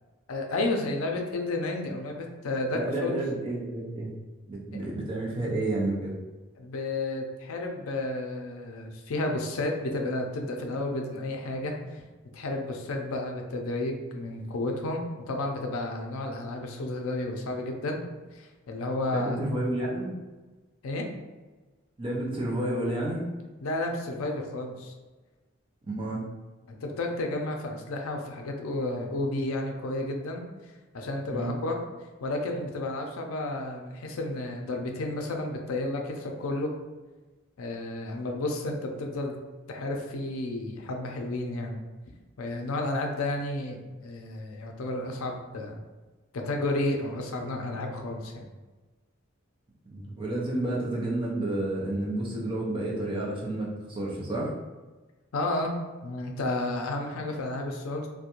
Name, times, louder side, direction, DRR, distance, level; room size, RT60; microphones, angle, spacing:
voice 1, 0.3-3.1 4.7-4.8 6.6-12.0 12.3-18.0 18.3-19.4 20.8-21.1 23.6-24.9 26.7-30.4 30.9-31.8 32.2-36.7 37.6-39.4 39.7-41.8 42.4-45.8 46.3-48.4 55.3-58.1, left 2 dB, 80° left, 2 dB, 0.4 m, -32 dB
voice 2, 2.7-4.1 4.5-6.2 19.1-20.1 22.0-23.3 25.8-26.2 31.3-31.6 49.9-54.5, right 1 dB, 25° right, -3 dB, 0.4 m, -30 dB
2.4 x 2.1 x 2.9 m, 1.2 s
head